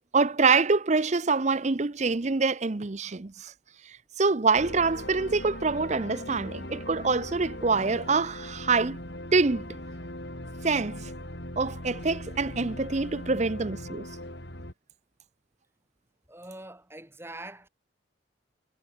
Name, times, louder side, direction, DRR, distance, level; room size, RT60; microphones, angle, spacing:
voice 1, 0.1-3.5 3.9-9.0 9.3-9.8 10.6-11.1 11.6-14.1, right 4 dB, 35° right, 0.6 m, -25 dB
sound 1, 4.5-14.7, left 1 dB, 55° left, 5.7 m, -40 dB
voice 2, 16.3-17.7, right 1 dB, 10° right, 5.6 m, -43 dB
head